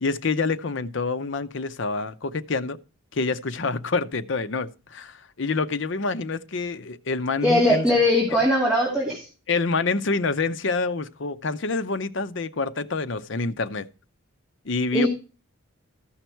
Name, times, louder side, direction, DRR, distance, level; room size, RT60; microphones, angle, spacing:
voice 1, 0.0-2.8 3.1-8.0 9.5-13.9 14.6-15.1, left 4 dB, 60° left, 0.6 m, -27 dB
voice 2, 7.4-9.3 14.9-15.1, left 1 dB, 5° right, 2.6 m, -20 dB
14.0 x 5.7 x 4.5 m
head